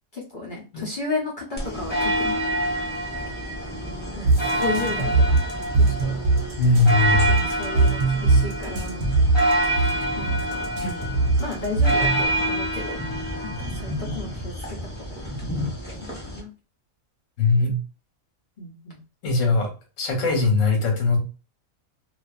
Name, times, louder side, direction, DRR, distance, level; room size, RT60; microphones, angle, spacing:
voice 1, 0.1-2.4 4.1-5.4 5.8-6.2 7.3-9.1 10.2-10.7 11.4-13.0 13.4-16.5 18.6-19.0, left 2 dB, 50° left, -3 dB, 0.6 m, -34 dB
sound 1, 1.6-16.4, right 1 dB, 10° left, 0.9 m, -27 dB
sound 2, 4.2-12.3, right 3 dB, 70° right, 0.9 m, -21 dB
voice 2, 6.6-7.3 10.8-10.9 17.4-17.7 19.2-19.7 20.0-21.2, left 3 dB, 70° left, 2 dB, 1.1 m, -20 dB
2.4 x 2.4 x 2.3 m, 0.34 s
omnidirectional pair, 1.4 m